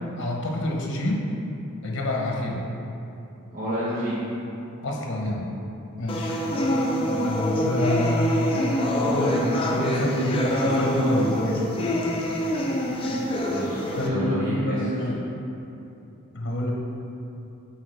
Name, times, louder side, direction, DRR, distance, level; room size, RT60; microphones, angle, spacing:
voice 1, 0.2-1.3 1.8-2.6 4.8-5.5 6.0-6.4 7.2-8.3 9.1-11.7 14.0-15.2 16.3-16.7, left 1 dB, 55° left, 0 dB, 0.8 m, -27 dB
voice 2, 3.5-4.2 6.4-6.6 13.4-14.8, equal, 40° right, -10 dB, 1.0 m, -29 dB
sound 1, 6.1-14.1, equal, 25° left, 0.5 m, -25 dB
8.4 x 4.1 x 3.3 m, 2.8 s
head